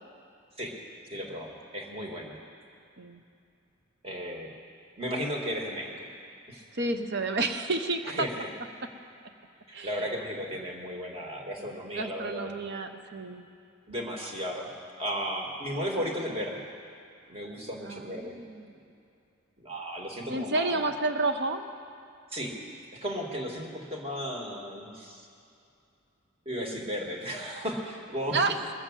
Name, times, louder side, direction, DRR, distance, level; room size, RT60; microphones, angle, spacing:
voice 1, 1.1-2.4 4.0-4.5 5.0-6.1 6.5-6.6 8.0-8.5 9.7-12.5 13.9-14.7 15.0-16.6 17.3-18.4 19.6-20.9 22.3-22.6 22.9-25.3 26.5-28.4, equal, 30° right, 0 dB, 1.9 m, -35 dB
voice 2, 6.7-8.3 9.7-10.0 11.6-11.7 11.9-13.5 17.8-18.7 20.3-21.6 28.3-28.6, right 3 dB, 55° right, 7 dB, 0.9 m, -30 dB
21.0 x 7.4 x 7.4 m, 2.6 s
head